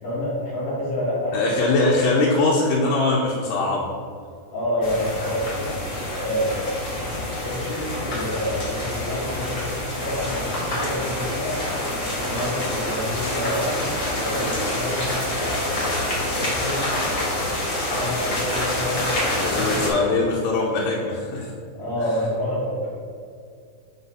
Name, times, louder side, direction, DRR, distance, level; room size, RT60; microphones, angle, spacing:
voice 1, 0.0-1.4 4.5-6.6 6.9-7.0 7.4-11.6 12.2-13.8 14.2-15.4 15.9-16.9 17.9-19.7 21.8-22.8, left 1 dB, 40° left, -8 dB, 1.9 m, -28 dB
voice 2, 1.3-3.9 19.4-21.5, left 2 dB, 90° left, -2 dB, 2.3 m, -21 dB
sound 1, 4.8-19.9, left 1 dB, 75° left, 0.7 m, -26 dB
5.3 x 4.0 x 5.4 m, 2.3 s
omnidirectional pair, 3.7 m